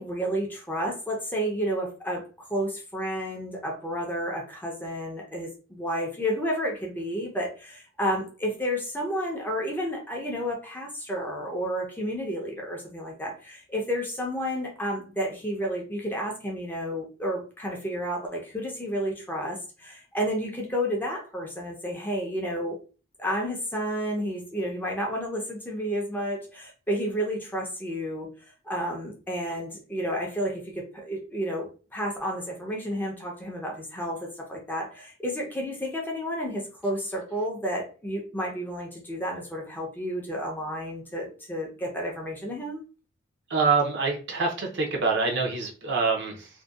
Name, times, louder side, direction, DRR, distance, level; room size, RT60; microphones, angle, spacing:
voice 1, 0.0-22.8 23.2-28.3 28.7-42.8, equal, 10° left, -1 dB, 0.5 m, -31 dB
voice 2, 43.5-46.5, right 4 dB, 55° right, 1 dB, 0.6 m, -25 dB
2.6 x 2.2 x 2.2 m, 0.35 s
head